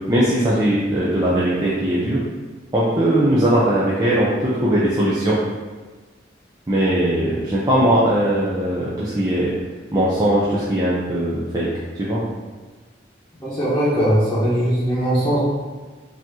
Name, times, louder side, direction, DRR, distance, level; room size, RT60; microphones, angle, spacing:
voice 1, 0.1-2.2 2.7-5.4 6.7-9.5 9.9-11.7 12.0-12.2, right 1 dB, 20° right, -8 dB, 0.6 m, -19 dB
voice 2, 13.4-15.4, equal, 10° left, -12 dB, 1.1 m, -19 dB
5.1 x 2.8 x 3.7 m, 1.3 s
head